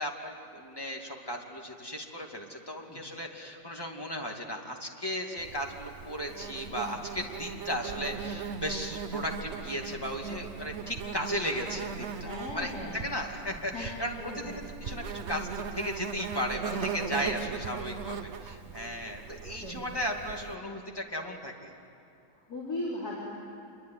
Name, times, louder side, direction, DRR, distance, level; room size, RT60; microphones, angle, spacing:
voice 1, 0.0-21.7, equal, 15° left, 1 dB, 2.5 m, -36 dB
Insect, 5.4-20.5, right 6 dB, 55° right, 0.9 m, -39 dB
voice 2, 12.2-13.0 13.7-13.9 14.2-14.5 16.6-17.7 18.6-18.8 19.6-19.8 22.3-23.1, left 2 dB, 60° left, -6 dB, 4.9 m, -38 dB
27.0 x 23.0 x 9.5 m, 2.7 s
omnidirectional pair, 1.8 m